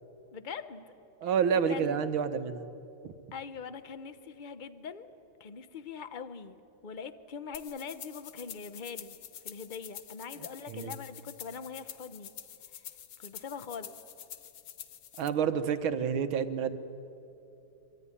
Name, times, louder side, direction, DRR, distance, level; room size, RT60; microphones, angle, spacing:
voice 1, 0.3-0.8 1.2-2.0 3.3-5.1 5.4-6.6 6.8-9.2 9.4-12.3 12.7-12.9 13.2-13.9, left 6 dB, 40° left, 12 dB, 0.6 m, -42 dB
voice 2, 1.2-2.7 3.0-3.1 10.7-10.9 15.2-16.8, right 7 dB, 85° right, 10 dB, 1.9 m, -29 dB
sound 1, 7.5-15.3, left 9 dB, 80° left, 1.9 m, -47 dB
24.5 x 23.5 x 9.9 m, 2.9 s
omnidirectional pair, 2.2 m